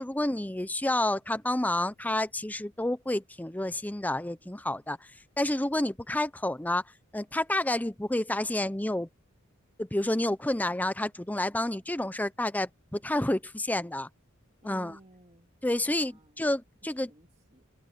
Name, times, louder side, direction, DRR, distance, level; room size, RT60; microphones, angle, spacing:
voice 1, 0.0-5.0 5.4-6.8 7.1-9.1 9.8-14.1 14.6-15.0 15.6-17.1, left 1 dB, 10° left, 0.7 m, -29 dB
voice 2, 14.6-16.5 16.8-17.6, right 1 dB, 30° right, 2.6 m, -56 dB
head